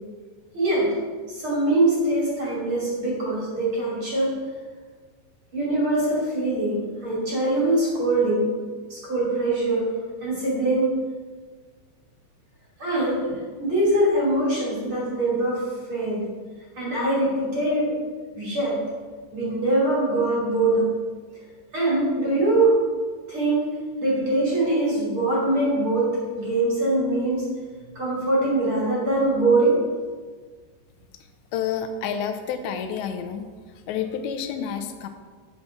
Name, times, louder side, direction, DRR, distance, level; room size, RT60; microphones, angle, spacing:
voice 1, 0.5-0.9 1.3-4.4 5.5-8.5 8.9-9.9 10.2-10.9 12.8-15.6 15.9-16.2 16.8-18.0 18.3-18.8 19.3-20.9 21.7-22.7 23.3-23.7 24.0-27.5 27.9-29.8, right 2 dB, 35° right, -7 dB, 3.0 m, -23 dB
voice 2, 31.5-33.5 33.9-35.1, left 7 dB, 90° left, 7 dB, 2.9 m, -29 dB
8.3 x 6.5 x 5.8 m, 1.5 s
omnidirectional pair, 5.0 m